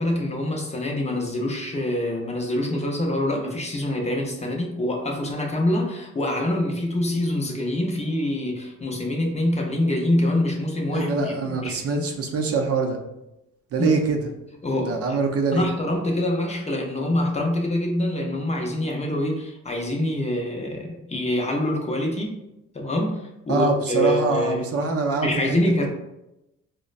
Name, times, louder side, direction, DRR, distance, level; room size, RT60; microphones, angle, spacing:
voice 1, 0.0-12.1 13.8-13.9 14.6-15.2 15.5-22.4 22.7-24.8 25.2-25.9, left 1 dB, 20° left, 1 dB, 0.5 m, -25 dB
voice 2, 10.9-13.0 13.7-14.2 14.8-15.6 23.5-25.6, right 4 dB, 50° right, 3 dB, 0.5 m, -24 dB
4.0 x 2.1 x 2.4 m, 0.91 s
cardioid pair, 90°, 30 cm